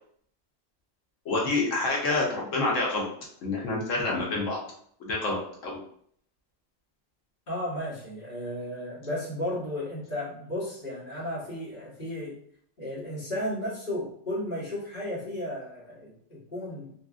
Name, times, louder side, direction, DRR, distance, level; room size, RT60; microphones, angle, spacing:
voice 1, 1.3-3.1 3.4-4.6 5.0-5.8, left 2 dB, 85° left, -2 dB, 1.2 m, -27 dB
voice 2, 7.5-12.4 12.8-16.9, left 1 dB, 45° left, -9 dB, 1.5 m, -34 dB
2.8 x 2.7 x 2.4 m, 0.63 s
omnidirectional pair, 1.3 m